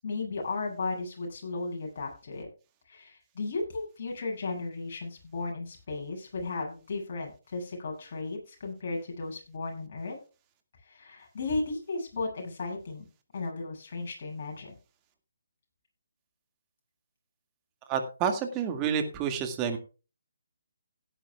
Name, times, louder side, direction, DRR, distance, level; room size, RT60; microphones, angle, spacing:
voice 1, 0.0-2.5 2.9-10.2 10.9-13.0 13.3-14.7, left 3 dB, 50° left, 0 dB, 7.9 m, -35 dB
voice 2, 17.9-19.8, right 7 dB, 20° right, 6 dB, 2.1 m, -29 dB
17.0 x 10.5 x 2.4 m, 0.34 s
figure-of-eight pair, 150°, 0 cm